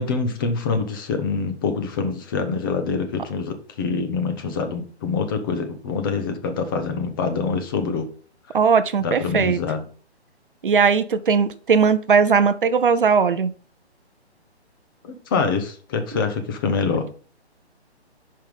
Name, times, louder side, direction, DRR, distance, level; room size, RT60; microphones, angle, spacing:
voice 1, 0.0-8.1 9.0-9.9 15.0-17.1, left 4 dB, 20° left, 7 dB, 0.8 m, -25 dB
voice 2, 8.5-9.6 10.6-13.5, right 6 dB, 50° right, 12 dB, 0.6 m, -18 dB
5.5 x 5.3 x 5.4 m, 0.41 s
figure-of-eight pair, 145°, 33 cm